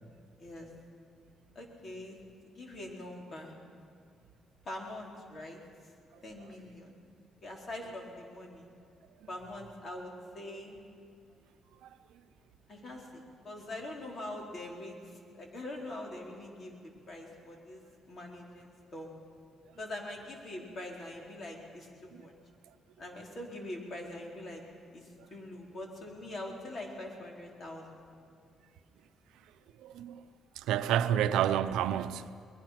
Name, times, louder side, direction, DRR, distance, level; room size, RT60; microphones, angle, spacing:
voice 1, 1.5-2.2 2.4-3.6 4.6-5.6 6.2-7.0 7.4-8.7 9.3-10.8 12.7-16.8 17.1-17.8 18.1-19.1 19.8-22.3 23.0-24.6 24.9-28.1, left 1 dB, 50° left, 4.4 m, -43 dB
voice 2, 29.8-30.2 30.6-32.3, right 10 dB, 90° right, 0.7 m, -29 dB
23.0 x 21.0 x 6.0 m
cardioid pair, 90°, 0 cm